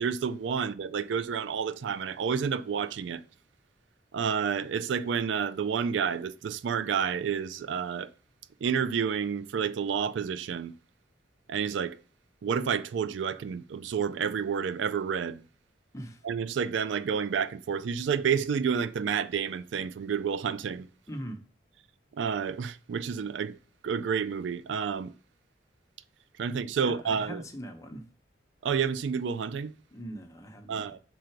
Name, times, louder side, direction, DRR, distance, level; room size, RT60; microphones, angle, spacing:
voice 1, 0.0-3.2 4.1-8.1 8.6-10.7 11.5-12.0 12.4-15.4 16.2-20.9 22.1-23.6 23.8-25.1 26.4-27.4 28.6-29.7 30.7-31.0, right 6 dB, 75° right, 0.4 m, -30 dB
voice 2, 21.1-21.4 26.8-28.0 29.9-30.9, equal, 15° left, 0.8 m, -41 dB
5.6 x 3.8 x 4.4 m
head